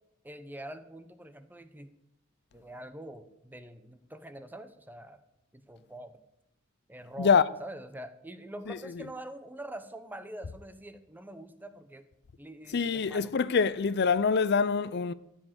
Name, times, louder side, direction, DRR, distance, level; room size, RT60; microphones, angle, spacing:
voice 1, 0.2-1.9 2.5-5.2 5.7-6.2 6.9-7.3 7.6-12.0 12.4-13.3, right 1 dB, 10° right, 0.9 m, -44 dB
voice 2, 12.7-15.1, left 5 dB, 55° left, 0.5 m, -25 dB
15.0 x 6.5 x 7.9 m
head